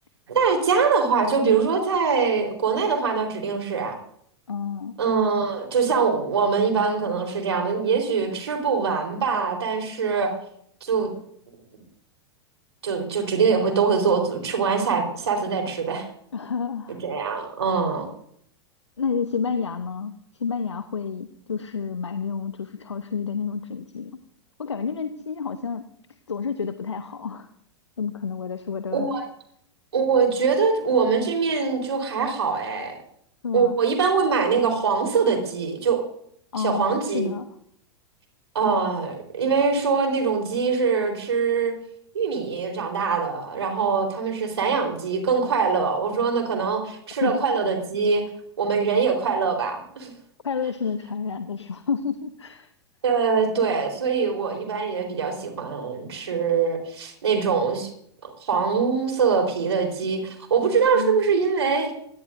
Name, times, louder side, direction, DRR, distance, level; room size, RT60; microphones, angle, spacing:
voice 1, 0.3-4.0 5.0-10.3 10.8-11.1 12.8-16.0 17.0-18.1 28.9-29.2 29.9-32.9 33.5-36.1 36.6-37.3 38.5-41.7 42.1-48.3 48.6-50.1 53.0-57.9 58.2-61.9, right 5 dB, 70° right, 3 dB, 4.2 m, -23 dB
voice 2, 4.5-5.0 16.3-17.0 19.0-20.1 20.4-24.2 24.6-25.8 26.3-27.5 28.0-29.1 33.4-33.8 36.5-37.5 47.2-47.5 50.4-52.7 60.9-61.2, left 6 dB, 80° left, 10 dB, 0.9 m, -29 dB
24.5 x 18.0 x 2.7 m, 0.67 s
figure-of-eight pair, 95°, 15 cm